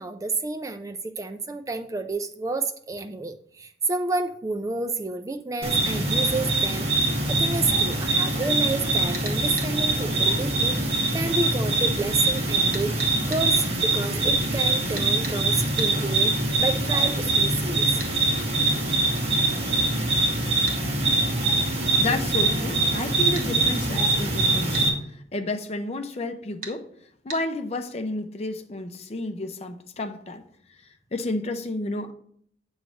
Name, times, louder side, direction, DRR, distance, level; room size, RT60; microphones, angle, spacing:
voice 1, 0.0-6.9 7.3-10.8 11.1-16.3 16.6-17.9, right 3 dB, 20° right, 8 dB, 0.3 m, -30 dB
sound 1, 5.6-24.9, right 2 dB, 35° right, 1.6 m, -23 dB
sound 2, 9.1-9.7 12.7-13.5 14.9-15.4 15.8-15.9 18.0-18.1 20.7-20.8 23.3-23.5 24.7-24.9 26.6-26.8 27.3-27.4, right 3 dB, 50° right, 1.3 m, -36 dB
voice 2, 22.0-24.8 25.3-26.9 27.2-30.4 31.1-32.1, left 2 dB, 35° left, 7 dB, 0.6 m, -31 dB
8.9 x 3.2 x 6.3 m, 0.65 s
head